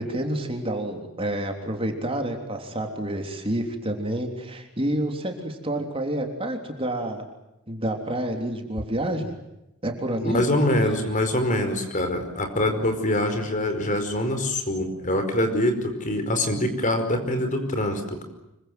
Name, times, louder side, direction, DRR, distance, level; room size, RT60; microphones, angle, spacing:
voice 1, 0.0-7.2 7.7-9.3 9.8-10.4, right 1 dB, 25° right, 4 dB, 3.4 m, -28 dB
voice 2, 10.2-18.2, left 1 dB, 40° left, 7 dB, 4.9 m, -24 dB
26.5 x 24.0 x 7.8 m, 0.90 s
head